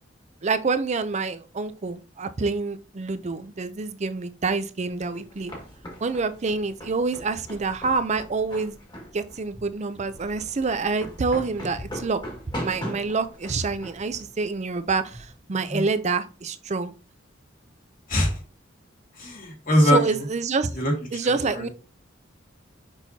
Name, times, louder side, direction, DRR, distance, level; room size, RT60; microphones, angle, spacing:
voice 1, 0.4-5.5 6.0-8.8 9.1-12.2 12.6-16.9 19.9-20.7 21.1-21.7, right 4 dB, 35° right, 0.5 m, -27 dB
sound 1, 4.9-15.3, equal, 25° left, 1.9 m, -39 dB
voice 2, 18.1-18.4 19.1-20.3 20.7-20.9 21.2-21.7, equal, 45° left, 2.3 m, -23 dB
6.3 x 5.4 x 2.8 m
head